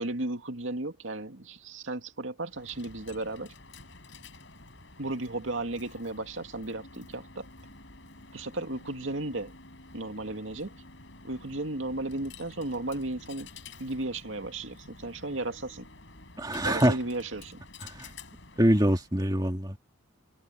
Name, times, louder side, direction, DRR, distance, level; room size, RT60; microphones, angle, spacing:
voice 1, 0.0-3.5 5.0-7.5 8.3-9.5 9.9-10.7 11.2-13.5 13.8-15.9 16.6-17.6, right 2 dB, 75° right, 2.3 m, -34 dB
Coin (dropping), 2.5-19.1, left 3 dB, 65° left, 6.9 m, -50 dB
voice 2, 16.4-17.0 17.9-18.1 18.6-19.8, equal, 20° right, 2.3 m, -24 dB
open air
head